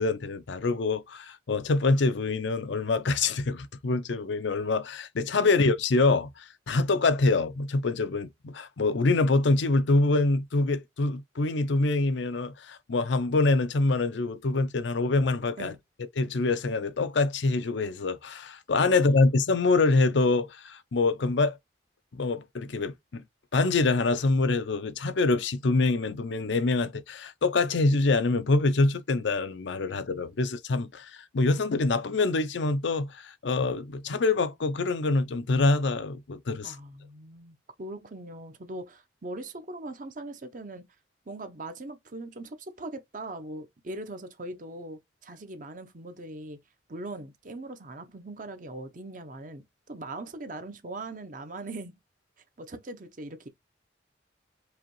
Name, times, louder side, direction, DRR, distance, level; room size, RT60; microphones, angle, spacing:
voice 1, 0.0-15.7 16.2-21.6 22.1-23.2 23.5-36.8, left 3 dB, 75° left, 0.6 m, -25 dB
voice 2, 36.6-40.8 41.3-46.6 46.9-52.0 52.6-53.5, right 2 dB, 45° right, 0.7 m, -40 dB
4.9 x 3.0 x 3.0 m
head